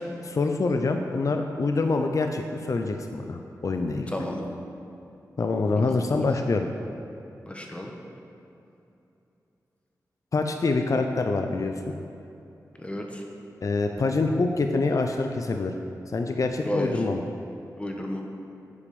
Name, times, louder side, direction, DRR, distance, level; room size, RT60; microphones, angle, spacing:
voice 1, 0.2-4.1 5.4-6.7 10.3-11.9 13.6-15.7 16.1-17.2, left 3 dB, 55° left, 5 dB, 0.5 m, -25 dB
voice 2, 4.1-4.5 5.7-6.3 7.5-7.9 12.8-13.2 16.6-17.1 17.8-18.2, left 1 dB, 20° left, 1 dB, 1.2 m, -32 dB
8.5 x 5.0 x 6.9 m, 2.8 s
cardioid pair, 65°, 7 cm